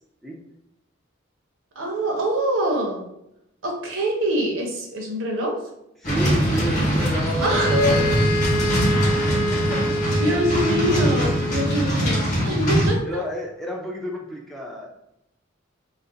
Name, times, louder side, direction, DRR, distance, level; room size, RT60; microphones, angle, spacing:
voice 1, 1.8-3.0 3.6-5.6 7.4-8.0 10.2-13.2, equal, 70° right, 1 dB, 0.7 m, -24 dB
sound 1, 6.0-12.9, equal, 35° left, 0.9 m, -22 dB
voice 2, 6.0-7.6 9.1-10.0 11.6-11.9 13.0-14.9, equal, ahead, -2 dB, 0.4 m, -31 dB
sound 2, 7.5-11.9, equal, 75° left, 0.7 m, -26 dB
2.4 x 2.1 x 3.8 m, 0.82 s
head